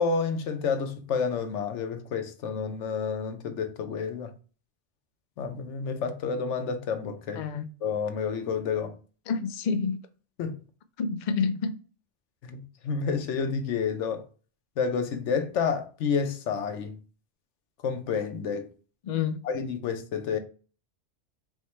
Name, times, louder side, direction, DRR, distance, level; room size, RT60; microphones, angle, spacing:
voice 1, 0.0-4.3 5.4-7.5 7.8-9.0 10.4-10.6 12.4-14.2 14.8-17.0 17.8-18.7 19.4-20.4, left 5 dB, 90° left, 1.0 m, -29 dB
voice 2, 7.4-7.7 9.3-10.0 11.0-11.7 19.0-19.4, left 5 dB, 55° left, 0.5 m, -28 dB
4.7 x 2.1 x 4.2 m
omnidirectional pair, 1.2 m